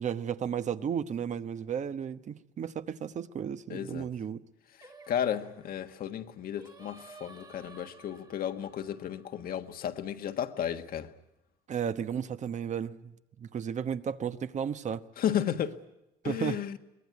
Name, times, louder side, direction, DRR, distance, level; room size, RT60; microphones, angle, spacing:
voice 1, 0.0-4.4 11.7-15.1 16.2-16.6, right 8 dB, 45° right, 1.1 m, -34 dB
voice 2, 3.7-4.1 5.1-11.1 15.2-15.8 16.2-16.8, left 9 dB, 60° left, 1.6 m, -33 dB
Singing, 4.8-10.1, right 3 dB, 25° right, 1.9 m, -54 dB
23.5 x 20.0 x 9.5 m
cardioid pair, 110°, 17 cm